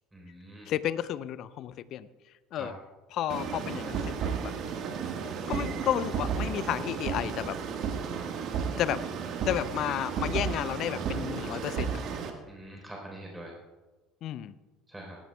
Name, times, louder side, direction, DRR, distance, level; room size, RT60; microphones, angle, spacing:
voice 1, 0.1-0.7 2.5-2.7 12.5-13.5 14.9-15.2, right 1 dB, 10° right, -1 dB, 3.8 m, -44 dB
voice 2, 0.7-2.1 2.5-2.7 3.1-4.3 5.5-7.6 8.8-9.0 9.4-12.0 14.2-14.5, left 11 dB, 50° left, 16 dB, 0.5 m, -32 dB
sound 1, 3.3-12.3, right 6 dB, 50° right, 1.5 m, -33 dB
17.5 x 16.5 x 2.3 m, 1.2 s
figure-of-eight pair, 65°, 0 cm